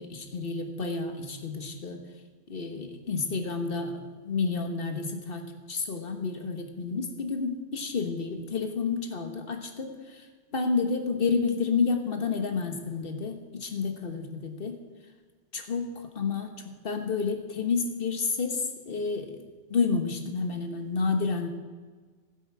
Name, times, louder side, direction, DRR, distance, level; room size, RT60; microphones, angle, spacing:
voice 1, 0.0-2.0 2.5-4.0 4.2-10.2 10.5-14.8 15.5-16.5 16.8-19.4 19.7-21.5, left 4 dB, 55° left, 6 dB, 1.4 m, -30 dB
15.5 x 8.0 x 4.7 m, 1.4 s
omnidirectional pair, 1.2 m